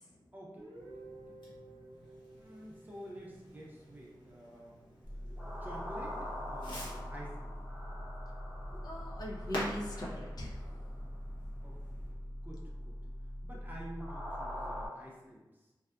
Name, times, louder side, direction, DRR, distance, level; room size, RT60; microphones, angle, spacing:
voice 1, 0.3-0.7 1.0-1.1 2.3-4.8 5.6-7.6 11.6-11.8 12.4-13.0 13.4-15.7, right 1 dB, 25° right, -4 dB, 0.6 m, -49 dB
Guitar, 0.6-4.4, right 2 dB, 80° right, 0.7 m, -54 dB
Fireworks, 0.7-12.1, equal, 90° left, 0.8 m, -48 dB
sound 1, 5.0-14.9, equal, 5° left, 1.0 m, -42 dB
voice 2, 8.7-11.0, left 1 dB, 55° left, -3 dB, 0.6 m, -41 dB
2.6 x 2.4 x 2.3 m, 1.1 s
wide cardioid pair, 105°, 8 cm